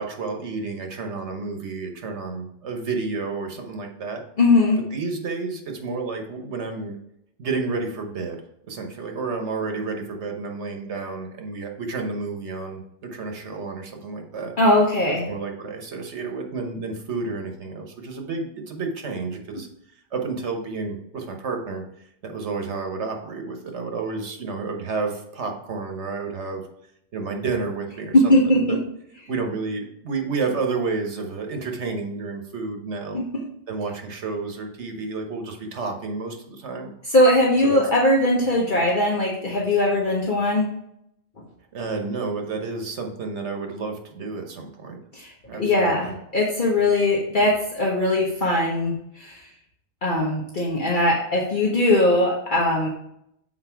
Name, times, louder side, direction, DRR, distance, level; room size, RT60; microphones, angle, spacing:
voice 1, 0.0-4.2 4.8-7.0 7.4-8.4 8.7-14.5 15.3-19.7 20.1-21.8 22.2-26.6 27.1-28.8 29.3-33.2 33.7-36.9 37.6-37.8 41.7-45.0 45.5-46.2, right 4 dB, 80° right, 3 dB, 1.3 m, -30 dB
voice 2, 4.4-4.8 14.6-15.3 28.1-28.8 33.1-33.3 37.0-40.7 45.1-45.3 45.6-49.4 50.0-52.9, left 1 dB, 45° left, -3 dB, 1.2 m, -20 dB
6.6 x 4.4 x 4.5 m, 0.76 s
omnidirectional pair, 1.2 m